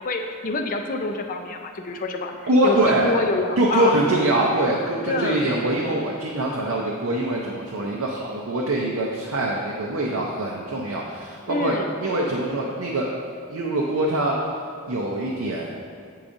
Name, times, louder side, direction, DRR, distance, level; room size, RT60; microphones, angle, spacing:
voice 1, 0.0-2.3 2.6-4.0 5.1-5.5 11.5-11.9, left 3 dB, 40° left, 5 dB, 0.4 m, -27 dB
voice 2, 2.5-3.1 3.6-13.1 13.5-14.3 14.9-15.8, right 1 dB, 80° right, -2 dB, 0.6 m, -23 dB
8.5 x 4.7 x 2.6 m, 2.2 s
head